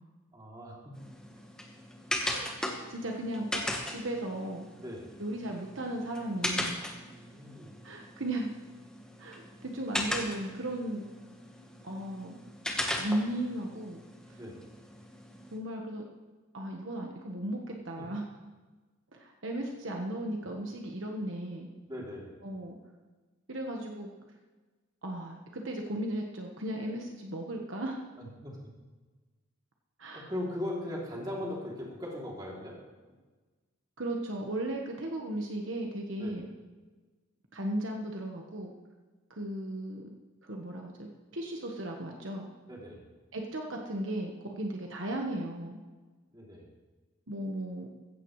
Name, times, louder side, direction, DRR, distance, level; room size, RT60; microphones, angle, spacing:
voice 1, 0.3-0.9 4.8-5.1 7.1-7.8 14.3-14.6 18.0-18.1 21.8-22.3 28.2-28.7 30.1-32.8 36.2-36.4 42.6-43.1 46.3-46.7, left 1 dB, 20° right, -3 dB, 3.0 m, -39 dB
sound 1, 0.9-15.6, left 1 dB, 5° left, 1.2 m, -38 dB
voice 2, 2.2-2.6 2.9-4.6 5.2-6.9 7.8-8.5 9.2-11.1 11.8-12.4 13.0-14.0 15.5-16.0 16.5-18.2 19.1-21.7 22.4-22.7 23.5-24.1 25.0-28.0 30.0-30.3 34.0-36.5 37.5-38.7 39.3-40.1 40.4-42.5 43.3-45.8 47.3-47.9, right 1 dB, 65° right, 1 dB, 1.3 m, -36 dB
15.5 x 15.0 x 3.2 m, 1.3 s
head